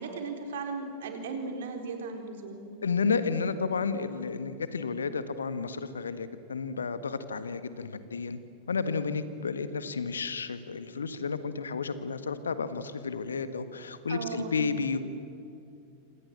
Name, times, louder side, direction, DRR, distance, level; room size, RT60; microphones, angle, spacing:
voice 1, 0.0-2.6 14.1-14.7, right 4 dB, 60° right, 4 dB, 4.3 m, -36 dB
voice 2, 2.8-8.4 8.7-15.0, left 5 dB, 70° left, 12 dB, 1.6 m, -32 dB
27.5 x 26.5 x 7.5 m, 2.6 s
figure-of-eight pair, 90°, 0 cm